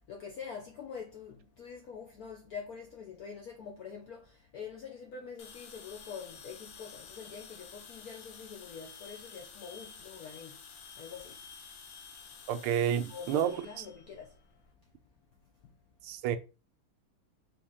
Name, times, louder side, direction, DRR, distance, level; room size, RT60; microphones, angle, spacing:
voice 1, 0.1-10.7 11.0-11.4 13.1-14.4 15.6-15.7, left 6 dB, 85° left, 0.8 m, -45 dB
sound 1, 5.4-14.6, left 6 dB, 70° left, 1.4 m, -51 dB
voice 2, 12.5-13.5 16.0-16.4, right 9 dB, 85° right, 1.4 m, -29 dB
4.0 x 3.0 x 3.5 m
omnidirectional pair, 2.3 m